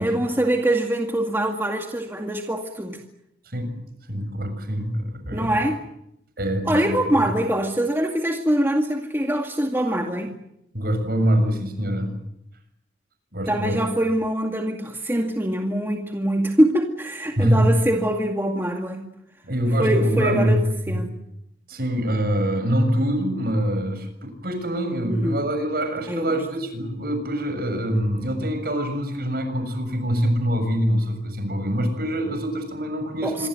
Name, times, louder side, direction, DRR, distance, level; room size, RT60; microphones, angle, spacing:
voice 1, 0.0-3.0 5.3-5.8 6.7-10.4 13.5-19.1 19.8-20.6 20.9-21.1 25.1-25.4 26.1-26.4 33.2-33.5, right 1 dB, 15° right, 2 dB, 2.1 m, -23 dB
voice 2, 4.1-5.6 6.4-7.0 7.2-7.3 10.7-12.1 13.3-13.8 17.4-17.7 19.4-20.6 20.9-21.0 21.7-33.5, equal, 55° right, 8 dB, 7.1 m, -24 dB
27.0 x 24.0 x 7.9 m, 0.79 s
head